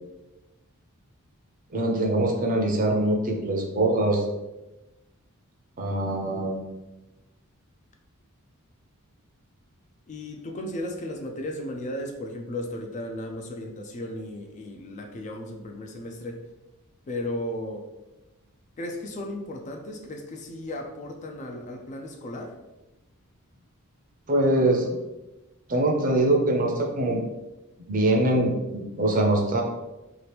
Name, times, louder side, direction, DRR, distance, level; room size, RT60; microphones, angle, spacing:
voice 1, 1.7-4.2 5.8-6.6 24.3-24.9 25.7-27.2 27.9-29.6, right 1 dB, 40° right, 1 dB, 0.6 m, -23 dB
voice 2, 10.1-16.5 17.1-17.9 18.8-22.6, left 1 dB, 35° left, 3 dB, 0.3 m, -35 dB
2.9 x 2.4 x 3.3 m, 1.0 s
head